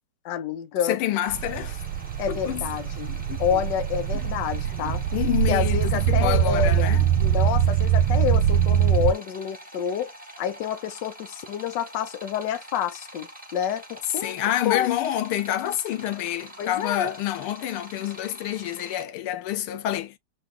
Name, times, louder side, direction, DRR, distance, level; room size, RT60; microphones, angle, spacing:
voice 1, 0.2-1.0 2.2-3.1 3.4-5.0 5.5-10.1 10.4-14.4 14.6-14.9 16.6-17.1, left 9 dB, 65° left, 1.2 m, -28 dB
voice 2, 0.8-1.8 2.3-2.6 3.1-3.4 4.8-7.1 14.2-20.2, left 12 dB, 90° left, 1.6 m, -28 dB
sound 1, 1.2-19.0, right 1 dB, 5° right, 0.9 m, -45 dB
sound 2, 1.3-9.1, right 10 dB, 80° right, 1.5 m, -23 dB
4.7 x 2.3 x 3.9 m
omnidirectional pair, 2.3 m